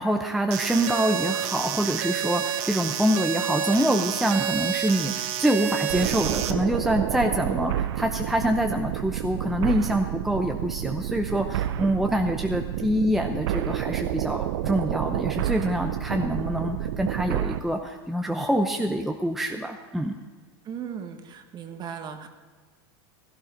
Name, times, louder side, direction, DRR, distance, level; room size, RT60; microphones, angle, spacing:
voice 1, 0.0-20.1, equal, ahead, 3 dB, 0.7 m, -25 dB
sound 1, 0.5-6.5, right 11 dB, 50° right, 1.1 m, -29 dB
sound 2, 5.9-17.6, right 12 dB, 75° right, 0.5 m, -29 dB
voice 2, 20.6-22.3, right 7 dB, 30° right, 7 dB, 1.3 m, -37 dB
16.0 x 13.5 x 4.0 m, 1.5 s
supercardioid pair, 130°, 14 cm